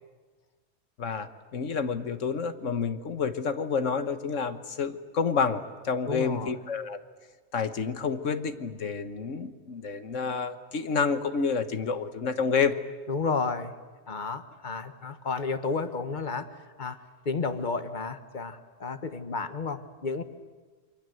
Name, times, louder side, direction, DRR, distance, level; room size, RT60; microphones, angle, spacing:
voice 1, 1.0-7.0 7.5-12.8, left 5 dB, 85° left, 10 dB, 1.7 m, -29 dB
voice 2, 6.1-6.6 13.1-13.7 14.1-16.5 16.8-20.2, left 4 dB, 40° left, 10 dB, 1.4 m, -32 dB
28.0 x 25.0 x 7.9 m, 1.4 s
omnidirectional pair, 1.3 m